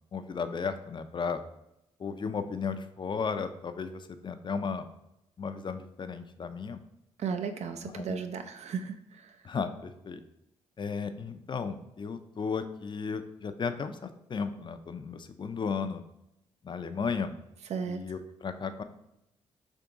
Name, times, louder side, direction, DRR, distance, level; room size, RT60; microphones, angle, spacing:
voice 1, 0.1-1.4 2.0-4.9 5.4-6.8 7.8-8.2 9.4-10.2 10.8-16.0 16.6-17.3 17.9-18.8, left 5 dB, 40° left, 9 dB, 0.4 m, -34 dB
voice 2, 7.2-8.9 17.7-18.0, right 6 dB, 65° right, 7 dB, 0.4 m, -34 dB
3.5 x 2.9 x 3.8 m, 0.83 s
supercardioid pair, 55°, 12 cm